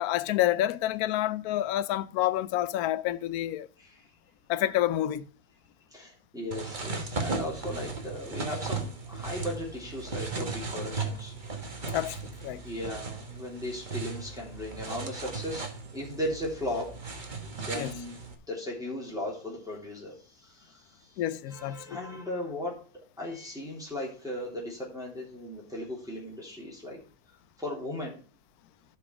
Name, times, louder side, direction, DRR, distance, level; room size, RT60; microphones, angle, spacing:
voice 1, 0.0-3.7 4.5-5.3 11.9-12.6 17.7-17.9 21.2-22.0, left 13 dB, 65° left, 1.0 m, -28 dB
voice 2, 5.9-11.3 12.6-17.0 17.5-18.2 18.5-21.1 21.5-22.8 23.2-27.0 27.6-28.2, left 1 dB, ahead, 3.3 m, -37 dB
sound 1, 6.5-18.3, right 4 dB, 30° right, 1.3 m, -37 dB
11.5 x 5.8 x 4.7 m
omnidirectional pair, 2.0 m